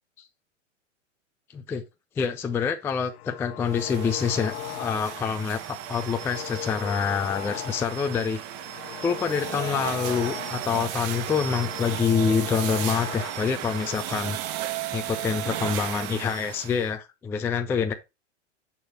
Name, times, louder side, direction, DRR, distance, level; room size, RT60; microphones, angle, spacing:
voice 1, 1.5-1.8 2.2-8.4 9.0-14.4 14.9-17.9, left 6 dB, 5° left, 0.3 m, -26 dB
sound 1, 3.0-5.3 5.7-8.0 8.4-10.8 11.1-13.5, left 15 dB, 55° left, 0.6 m, -38 dB
sound 2, 3.7-16.9, right 12 dB, 45° right, 1.1 m, -35 dB
6.9 x 6.2 x 2.7 m
hypercardioid pair, 100°, 37 cm